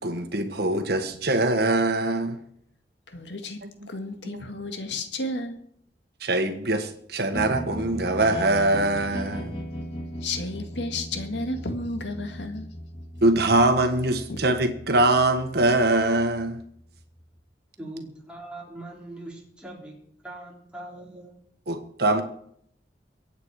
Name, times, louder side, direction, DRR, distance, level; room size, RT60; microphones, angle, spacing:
voice 1, 0.0-2.4 4.2-4.4 6.2-9.6 13.2-16.6 21.7-22.2, right 2 dB, 65° right, 7 dB, 1.6 m, -23 dB
voice 2, 3.1-3.6 3.9-5.6 10.2-12.7 14.3-14.4, left 2 dB, 90° left, 6 dB, 1.9 m, -32 dB
sound 1, 7.3-17.4, equal, 30° left, 1.7 m, -38 dB
voice 3, 17.8-21.4, right 1 dB, 5° right, -3 dB, 4.6 m, -41 dB
23.5 x 8.6 x 4.9 m, 0.67 s
head